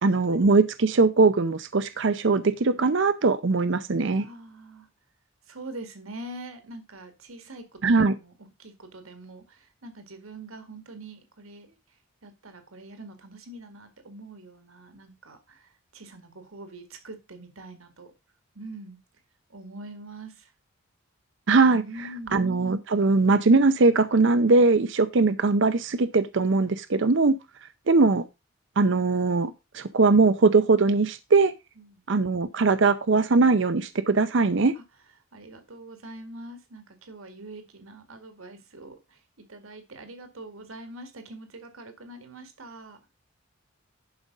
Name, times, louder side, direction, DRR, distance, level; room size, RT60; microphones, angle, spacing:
voice 1, 0.0-4.3 7.8-8.1 21.5-21.8 22.3-27.3 27.9-28.2 28.8-31.5 32.1-34.7, right 3 dB, 60° right, 0.6 m, -21 dB
voice 2, 4.2-4.9 5.5-7.8 8.1-8.3 8.6-12.0 12.2-18.1 18.5-19.0 19.5-20.5 21.8-22.3 31.8-32.0 34.7-34.8 35.3-43.0, right 2 dB, 80° right, 2.0 m, -44 dB
11.5 x 5.0 x 5.2 m
head